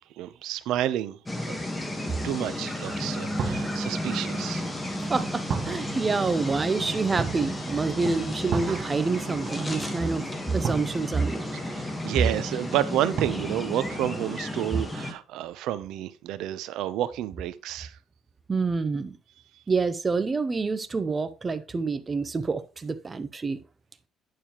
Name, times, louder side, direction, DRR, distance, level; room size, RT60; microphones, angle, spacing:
voice 1, 0.0-1.6 2.2-4.7 11.5-18.0, right 12 dB, 70° right, 0.6 m, -30 dB
sound 1, 1.3-15.1, left 1 dB, 10° left, 1.2 m, -33 dB
sound 2, 2.8-14.2, right 6 dB, 45° right, 1.1 m, -37 dB
voice 2, 5.0-10.2 10.5-11.5 18.5-19.2 19.7-23.6, right 4 dB, 20° right, 0.5 m, -27 dB
9.2 x 6.6 x 2.9 m
cardioid pair, 155°, 0 cm